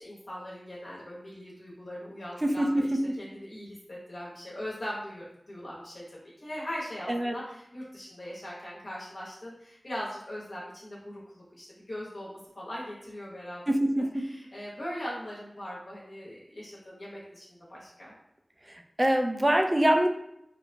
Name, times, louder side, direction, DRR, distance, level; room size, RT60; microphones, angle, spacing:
voice 1, 0.0-13.6 14.0-18.1, equal, 65° left, -6 dB, 0.8 m, -40 dB
voice 2, 2.4-3.0 7.1-7.3 13.7-14.0 19.0-20.1, right 1 dB, 20° right, 4 dB, 0.3 m, -24 dB
2.8 x 2.1 x 2.5 m, 0.79 s
wide cardioid pair, 55°, 0 cm